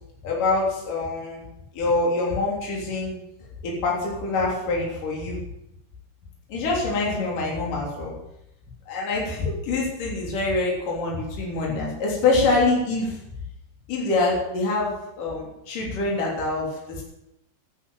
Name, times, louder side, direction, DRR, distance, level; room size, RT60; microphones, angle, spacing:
voice 1, 0.2-1.5 1.7-3.1 3.6-5.4 6.5-8.1 8.9-13.2 13.9-17.0, left 3 dB, 55° left, -3 dB, 4.8 m, -25 dB
11.0 x 9.9 x 9.2 m, 0.86 s
omnidirectional pair, 4.7 m